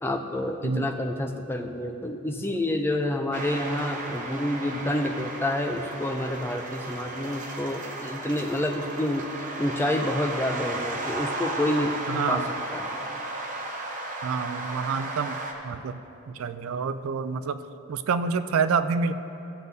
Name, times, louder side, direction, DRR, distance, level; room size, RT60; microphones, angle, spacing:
voice 1, 0.0-9.3 9.6-12.0 12.3-12.4 12.7-12.9, left 1 dB, 10° left, 4 dB, 0.4 m, -28 dB
sound 1, 3.3-15.5, right 2 dB, 35° right, 0.7 m, -34 dB
voice 2, 12.1-12.5 14.2-15.4 15.6-16.0 16.3-17.6 17.9-19.1, right 5 dB, 70° right, 11 dB, 0.3 m, -27 dB
15.0 x 7.8 x 2.7 m, 2.9 s
head